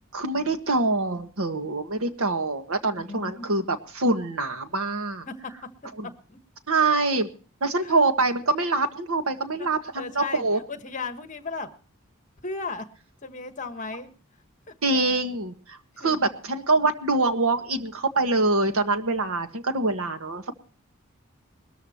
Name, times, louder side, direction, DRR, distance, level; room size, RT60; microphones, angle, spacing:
voice 1, 0.1-5.3 6.0-6.1 6.7-7.3 7.6-10.6 14.8-20.6, right 3 dB, 85° right, 8 dB, 1.6 m, -25 dB
voice 2, 3.1-3.5 5.3-5.5 6.3-6.4 7.7-7.9 9.6-9.7 10.0-11.7 12.4-12.8 13.2-14.1 14.7-14.8 15.9-16.2, left 3 dB, 35° left, 8 dB, 1.4 m, -35 dB
20.5 x 13.5 x 3.0 m, 0.39 s
head